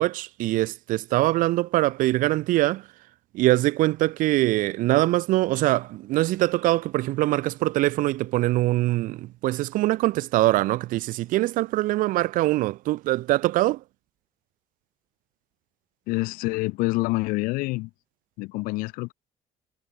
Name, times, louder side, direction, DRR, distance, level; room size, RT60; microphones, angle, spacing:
voice 1, 0.0-2.8 3.3-13.8, right 17 dB, 75° right, 1.0 m, -23 dB
voice 2, 16.1-17.9 18.4-19.1, left 23 dB, 85° left, 1.4 m, -27 dB
supercardioid pair, 85°, 14 cm